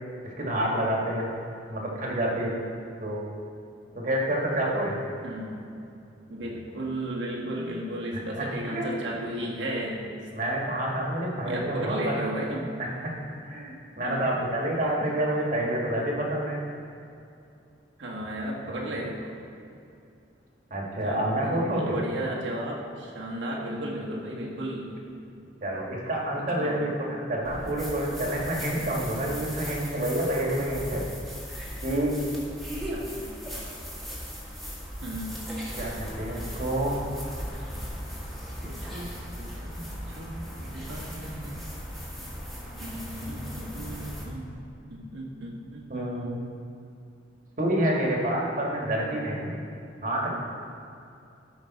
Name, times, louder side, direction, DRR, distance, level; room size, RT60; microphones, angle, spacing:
voice 1, 0.2-1.3 1.7-2.5 3.0-3.2 3.9-5.0 8.1-8.9 10.3-12.3 12.8-13.2 13.4-16.6 18.6-19.0 20.7-22.0 25.6-31.0 31.8-32.1 35.8-37.0 45.9-46.4 47.6-49.5 50.0-50.3, right 1 dB, 45° right, -2 dB, 1.7 m, -28 dB
voice 2, 5.2-5.7 6.3-10.1 11.4-12.7 14.0-14.3 18.0-19.3 21.0-25.0 25.3-25.4 26.3-26.9 32.8-33.3 35.0-35.4 38.6-41.6 42.8-44.5 44.9-46.3, right 1 dB, 80° right, -2 dB, 1.6 m, -35 dB
sound 1, 27.4-44.2, equal, ahead, 1.6 m, -38 dB
13.5 x 5.2 x 4.2 m, 2.6 s
head